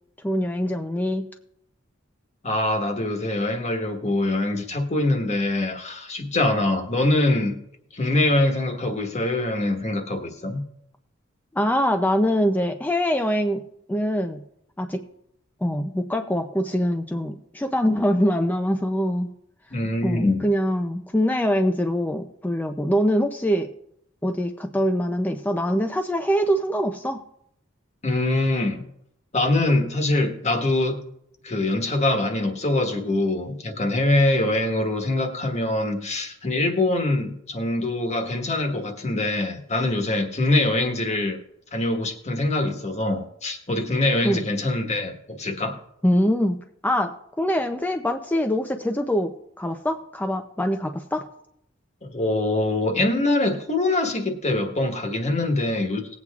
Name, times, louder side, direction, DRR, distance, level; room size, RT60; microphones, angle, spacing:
voice 1, 0.2-1.3 11.5-13.6 13.9-14.4 14.8-15.0 15.6-19.3 20.0-23.7 24.2-27.2 44.2-44.4 46.0-51.2, equal, 10° left, 0.4 m, -24 dB
voice 2, 2.4-7.6 7.9-10.6 19.7-20.4 28.0-28.8 29.3-31.0 31.4-41.4 41.7-45.8 52.0-56.2, left 2 dB, 35° left, 1.3 m, -24 dB
19.5 x 8.3 x 2.4 m
head